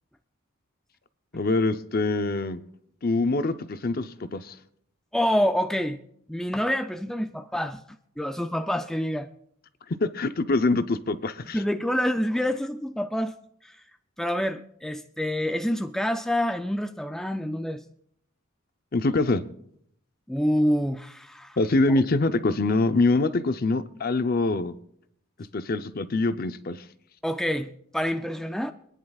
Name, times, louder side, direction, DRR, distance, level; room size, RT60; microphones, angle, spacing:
voice 1, 1.3-2.6 3.0-4.5 10.0-11.6 18.9-19.4 21.6-24.7 25.5-26.8, left 2 dB, 45° left, 11 dB, 0.6 m, -24 dB
voice 2, 5.1-6.0 6.3-7.8 8.2-9.3 11.5-13.3 13.6-13.8 14.2-17.8 20.3-21.6 27.2-28.7, equal, ahead, 6 dB, 0.4 m, -27 dB
26.0 x 10.0 x 2.4 m, 0.70 s
head